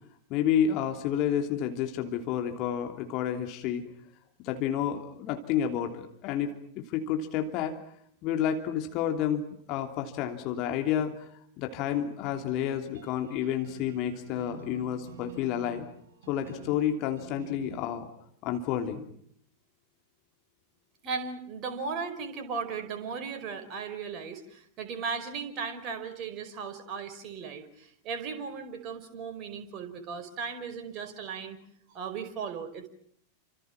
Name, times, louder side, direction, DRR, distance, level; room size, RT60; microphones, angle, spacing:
voice 1, 0.3-3.8 4.4-6.5 6.8-7.8 8.2-11.2 11.6-15.9 16.3-18.1 18.4-19.1, left 9 dB, 40° left, 5 dB, 3.1 m, -30 dB
sound 1, 12.2-17.8, right 8 dB, 60° right, 7.8 m, -49 dB
voice 2, 21.0-31.6 31.9-32.9, right 5 dB, 35° right, 6 dB, 5.1 m, -36 dB
29.5 x 26.5 x 6.1 m, 0.66 s
figure-of-eight pair, 90°, 0 cm